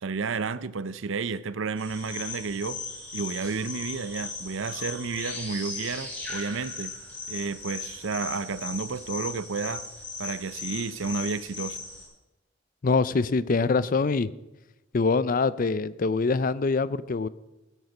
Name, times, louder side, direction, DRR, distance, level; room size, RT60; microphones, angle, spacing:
voice 1, 0.0-2.8 3.1-6.9 7.3-9.9 10.2-11.8, right 4 dB, 70° right, 0.6 m, -31 dB
sound 1, 1.8-12.0, left 4 dB, 10° left, 5.5 m, -38 dB
voice 2, 12.8-14.3 14.9-17.3, left 4 dB, 40° left, 0.4 m, -24 dB
16.0 x 8.1 x 6.0 m
head